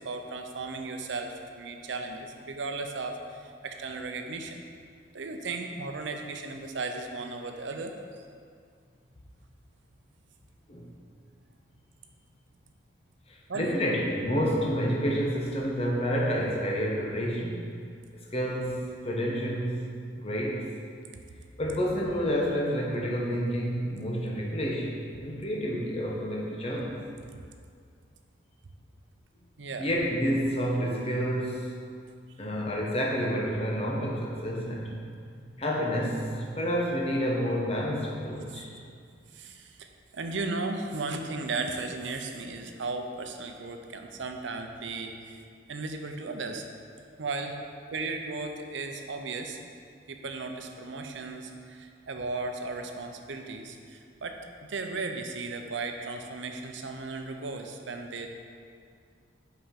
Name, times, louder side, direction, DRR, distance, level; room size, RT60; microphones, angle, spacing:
voice 1, 0.0-4.6 5.1-8.3 13.5-13.8 29.6-29.9 35.2-35.5 38.4-38.6 39.3-39.9 40.1-46.6 47.2-47.6 47.9-49.6 50.1-58.3, right 3 dB, 75° right, 5 dB, 0.6 m, -36 dB
voice 2, 13.3-17.7 18.3-19.9 20.2-20.7 21.6-27.0 29.8-31.7 32.4-35.0 35.6-38.7, equal, 30° left, -2 dB, 0.9 m, -29 dB
5.6 x 4.9 x 5.7 m, 2.2 s
head